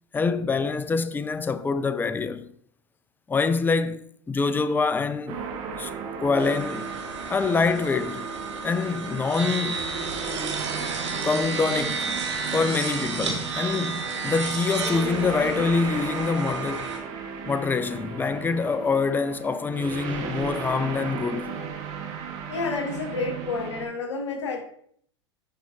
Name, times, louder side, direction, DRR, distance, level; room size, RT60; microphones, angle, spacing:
voice 1, 0.1-2.5 3.3-5.4 5.8-5.9 6.2-6.9 7.3-8.3 8.6-9.9 11.2-12.1 12.5-16.9 17.5-21.6, left 4 dB, 15° left, 0.5 m, -25 dB
sound 1, 5.3-23.9, right 6 dB, 50° right, 1.5 m, -36 dB
sound 2, 6.4-17.0, right 4 dB, 90° right, 1.3 m, -32 dB
voice 2, 11.8-12.1 22.5-24.6, left 4 dB, 85° left, 1.1 m, -30 dB
10.5 x 4.3 x 2.8 m
hypercardioid pair, 90°, 15 cm